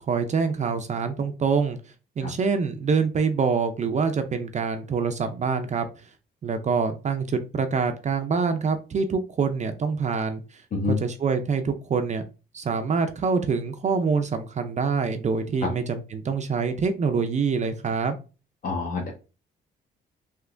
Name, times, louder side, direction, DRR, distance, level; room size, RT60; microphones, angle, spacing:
voice 1, 0.0-1.8 2.2-5.9 6.4-10.6 10.9-12.2 12.5-18.2, right 5 dB, 35° right, 7 dB, 0.4 m, -25 dB
voice 2, 18.6-19.1, left 4 dB, 45° left, 0 dB, 0.8 m, -26 dB
3.3 x 2.8 x 2.4 m, 0.33 s
cardioid pair, 90°, 20 cm